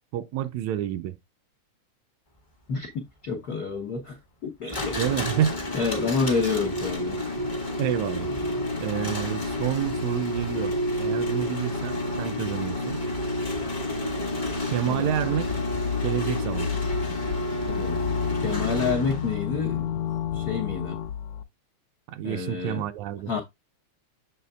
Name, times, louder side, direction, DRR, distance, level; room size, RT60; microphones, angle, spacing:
voice 1, 0.1-1.2 4.9-5.6 7.8-8.3 8.8-13.0 14.7-15.5 16.0-16.7 22.1-23.4, right 11 dB, 80° right, 1.8 m, -29 dB
voice 2, 2.7-5.0 5.7-7.2 14.9-15.3 17.7-18.0 18.4-19.9 20.3-21.0 22.2-22.8 23.3-23.4, left 5 dB, 90° left, 0.8 m, -29 dB
sound 1, 4.7-19.4, left 1 dB, 35° left, 0.7 m, -29 dB
sound 2, 15.1-21.4, left 9 dB, 70° left, 1.7 m, -31 dB
6.9 x 6.8 x 2.3 m
omnidirectional pair, 3.4 m